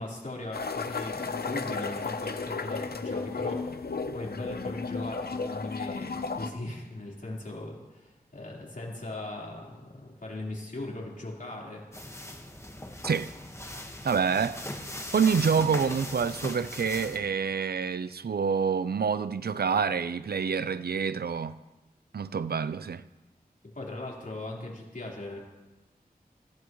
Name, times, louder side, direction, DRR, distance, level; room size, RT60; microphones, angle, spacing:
voice 1, 0.0-3.8 4.1-12.0 23.7-25.4, left 2 dB, 60° left, 4.1 m, -39 dB
sound 1, 0.5-6.5, left 4 dB, 80° left, 0.8 m, -34 dB
sound 2, 11.9-17.2, left 1 dB, 15° left, 1.5 m, -39 dB
voice 2, 14.0-14.6 15.1-21.6 22.1-23.0, right 6 dB, 80° right, 0.5 m, -27 dB
20.5 x 15.5 x 3.1 m
wide cardioid pair, 65°, 16 cm